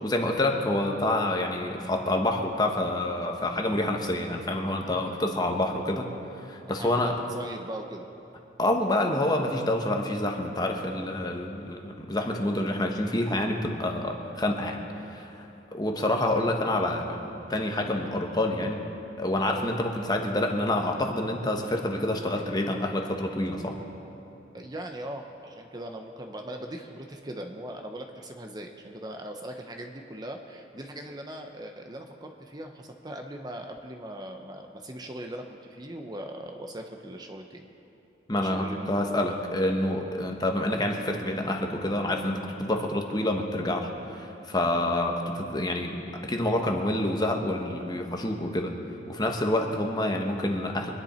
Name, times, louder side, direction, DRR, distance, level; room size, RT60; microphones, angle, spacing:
voice 1, 0.0-6.1 6.3-7.1 8.6-14.8 15.1-15.5 15.7-18.8 19.2-23.8 38.3-48.7 49.1-50.9, left 1 dB, 20° left, 3 dB, 1.2 m, -27 dB
voice 2, 4.8-5.2 6.6-8.1 24.5-37.6 38.3-38.9 39.3-39.4 40.2-40.3, right 1 dB, 20° right, 3 dB, 0.8 m, -40 dB
24.5 x 10.5 x 4.4 m, 2.9 s
head